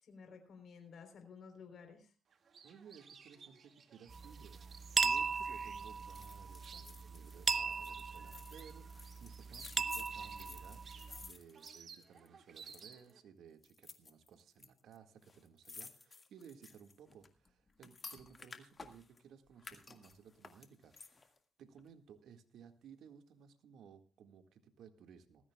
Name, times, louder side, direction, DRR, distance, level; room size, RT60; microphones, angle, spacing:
voice 1, 0.0-2.1, left 5 dB, 55° left, 5 dB, 3.7 m, -54 dB
sound 1, 2.3-13.2, right 6 dB, 50° right, 2.1 m, -58 dB
voice 2, 2.6-25.5, right 7 dB, 75° right, 7 dB, 1.8 m, -59 dB
sound 2, 4.1-11.3, right 4 dB, 35° right, 0.5 m, -38 dB
sound 3, 6.1-12.3 12.6-13.1 13.6-14.7 14.9-15.0 15.2-19.2 19.6-21.4 21.8-21.9, left 4 dB, 30° left, 1.9 m, -53 dB
19.0 x 15.0 x 2.3 m, 0.36 s
cardioid pair, 90°, 0 cm